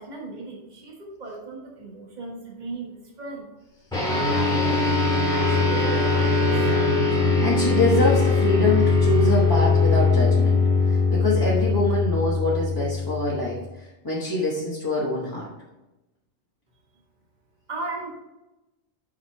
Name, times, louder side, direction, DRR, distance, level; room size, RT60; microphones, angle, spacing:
voice 1, 0.0-3.5 4.0-4.8 5.3-6.6 17.7-18.1, right 3 dB, 40° right, -1 dB, 1.5 m, -36 dB
sound 1, 3.9-13.6, left 4 dB, 5° left, 2.1 m, -21 dB
Bowed string instrument, 4.1-8.9, right 1 dB, 70° right, 1.1 m, -28 dB
voice 2, 7.1-15.5, left 1 dB, 20° left, -6 dB, 1.1 m, -25 dB
5.8 x 5.4 x 4.5 m, 1.0 s
omnidirectional pair, 1.2 m